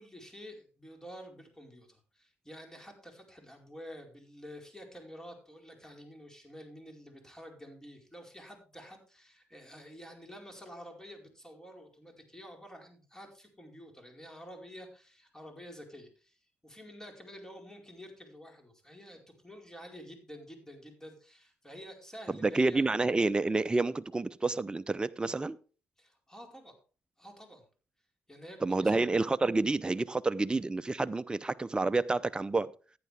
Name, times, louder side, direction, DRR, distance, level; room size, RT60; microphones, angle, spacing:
voice 1, 0.0-22.8 26.0-26.8 27.2-27.6 28.3-29.2, equal, 10° left, 4.6 m, -49 dB
voice 2, 22.4-25.6 28.6-32.7, right 3 dB, 20° right, 0.6 m, -29 dB
15.0 x 9.4 x 3.5 m
supercardioid pair, 55°, 5 cm